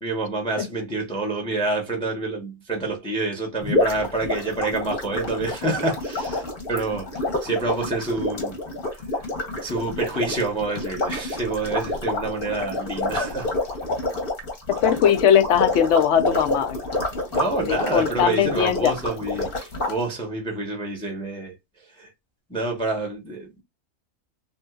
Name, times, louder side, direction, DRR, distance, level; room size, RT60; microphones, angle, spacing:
voice 1, 0.0-8.6 9.6-13.5 17.3-21.5 21.9-22.1 22.5-23.6, right 3 dB, 5° left, 0.6 m, -28 dB
sound 1, 3.6-19.9, left 2 dB, 45° left, 1.1 m, -28 dB
voice 2, 14.7-16.8 17.7-18.9, left 9 dB, 65° left, 0.8 m, -20 dB
3.6 x 2.6 x 2.3 m
omnidirectional pair, 1.4 m